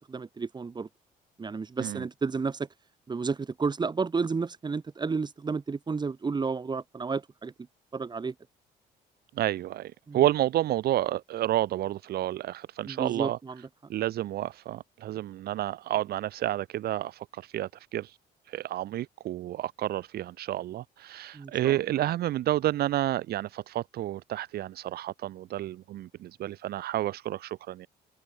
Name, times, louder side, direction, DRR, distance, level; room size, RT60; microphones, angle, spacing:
voice 1, 0.1-0.9 1.4-2.7 3.1-7.5 7.9-8.3 10.1-10.2 12.8-13.6 21.3-21.8, right 4 dB, 25° right, 4.2 m, -31 dB
voice 2, 9.4-13.4 13.9-18.1 18.5-27.9, right 13 dB, 65° right, 2.0 m, -30 dB
cardioid pair, 110°, 17 cm